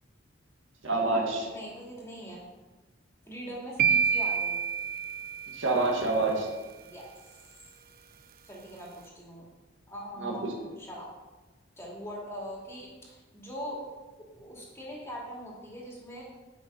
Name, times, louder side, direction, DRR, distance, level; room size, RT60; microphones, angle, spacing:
voice 1, 0.8-1.5 5.5-6.5 10.2-10.7, right 2 dB, 80° right, -1 dB, 2.0 m, -27 dB
voice 2, 1.5-2.4 3.3-4.6 6.8-7.1 8.4-9.5 9.9-10.4 10.8-11.1 11.8-13.8 14.3-16.2, equal, 15° left, -4 dB, 2.5 m, -41 dB
sound 1, 3.8-5.9, right 7 dB, 50° right, 0.5 m, -27 dB
9.8 x 5.9 x 5.5 m, 1.2 s
head